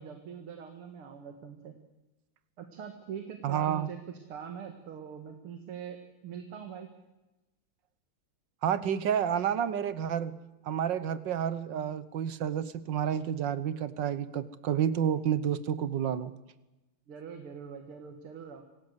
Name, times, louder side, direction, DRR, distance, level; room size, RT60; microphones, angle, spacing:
voice 1, 0.0-1.7 2.6-4.0 4.3-6.9 17.1-18.6, right 7 dB, 90° right, 6 dB, 2.6 m, -43 dB
voice 2, 3.4-3.9 8.6-10.3 10.6-16.3, right 9 dB, 65° right, 15 dB, 1.6 m, -30 dB
26.0 x 18.5 x 8.1 m, 1.0 s
omnidirectional pair, 2.3 m